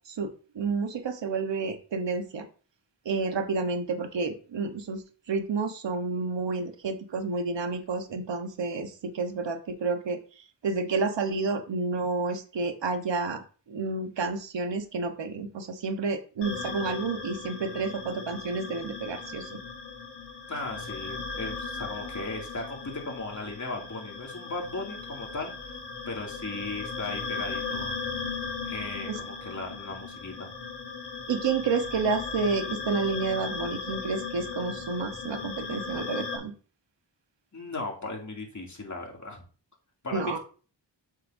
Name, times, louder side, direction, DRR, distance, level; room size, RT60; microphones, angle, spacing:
voice 1, 0.1-2.5 3.0-10.2 10.6-19.6 29.1-29.2 31.3-36.5 40.1-40.4, right 4 dB, 80° right, 7 dB, 1.2 m, -30 dB
sound 1, 16.4-36.4, left 4 dB, 75° left, 2.0 m, -37 dB
voice 2, 20.5-25.5 26.1-27.9 28.7-30.5 37.5-39.4 40.0-40.4, left 2 dB, 40° left, 0 dB, 2.6 m, -37 dB
7.9 x 7.4 x 2.7 m, 0.38 s
cardioid pair, 55°, 43 cm